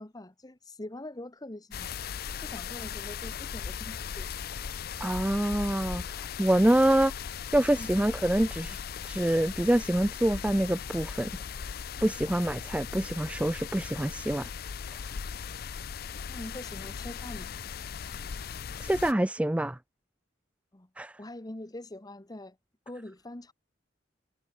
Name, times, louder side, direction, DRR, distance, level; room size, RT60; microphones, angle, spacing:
voice 1, 0.0-1.9 2.4-4.3 7.8-7.9 16.3-17.5 20.7-20.9 21.2-22.6 22.9-23.5, left 1 dB, 20° left, 1.0 m, -43 dB
sound 1, 1.7-19.1, left 7 dB, 55° left, 0.5 m, -38 dB
voice 2, 5.0-7.1 7.5-11.3 12.0-14.5 18.8-19.8 21.0-21.1, right 1 dB, 5° right, 0.3 m, -26 dB
head